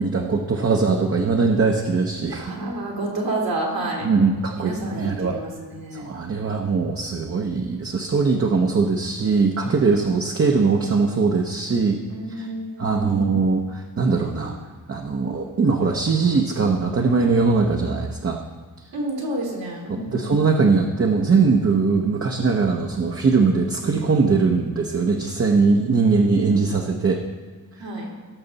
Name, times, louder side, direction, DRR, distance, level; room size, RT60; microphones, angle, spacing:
voice 1, 0.0-2.4 4.0-5.4 5.9-12.0 12.3-12.5 12.8-14.5 14.9-18.4 19.9-27.2, right 4 dB, 40° right, 1 dB, 0.8 m, -21 dB
voice 2, 2.3-4.1 4.6-6.1 12.1-13.3 18.9-20.3 23.7-23.9 25.6-26.0 27.8-28.1, right 1 dB, 80° right, -2 dB, 2.8 m, -30 dB
17.5 x 6.9 x 4.0 m, 1.5 s
wide cardioid pair, 150°, 36 cm